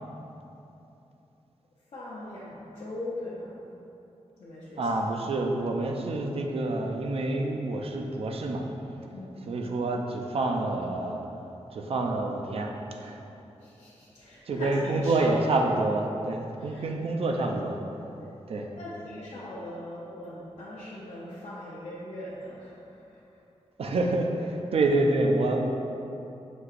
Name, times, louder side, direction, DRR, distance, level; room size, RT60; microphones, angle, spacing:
voice 1, 1.9-3.6 4.4-4.9 9.1-9.4 13.6-15.3 16.6-16.8 18.8-23.2, left 1 dB, 65° left, -9 dB, 0.6 m, -40 dB
voice 2, 4.8-8.7 9.5-11.2 11.7-12.7 13.0-13.2 14.5-17.8 18.5-18.7 23.8-25.7, right 2 dB, 60° right, 2 dB, 0.4 m, -27 dB
6.1 x 2.8 x 2.4 m, 2.9 s
wide cardioid pair, 150°, 12 cm